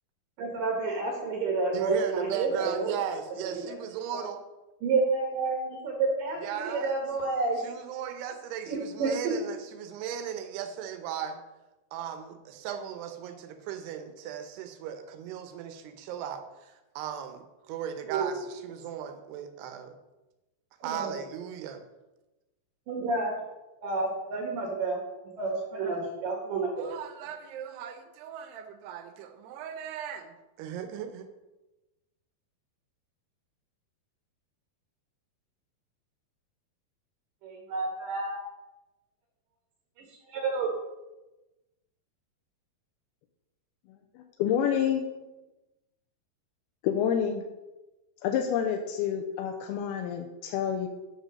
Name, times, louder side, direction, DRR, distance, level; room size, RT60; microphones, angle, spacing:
voice 1, 0.4-3.0 3.5-3.7 4.8-7.6 8.7-9.3 18.1-18.3 20.8-21.2 22.9-23.3 23.8-25.0 25.4-26.9 37.4-38.4 40.0-40.7, right 3 dB, 65° right, 0 dB, 2.7 m, -30 dB
voice 2, 1.7-4.4 6.4-7.0 7.6-11.4 11.9-20.0 20.8-21.8 26.8-31.3, right 9 dB, 85° right, 7 dB, 2.9 m, -37 dB
voice 3, 44.2-45.1 46.8-47.4 48.2-50.9, left 8 dB, 85° left, 3 dB, 2.5 m, -28 dB
8.3 x 5.2 x 6.2 m, 1.1 s
omnidirectional pair, 4.6 m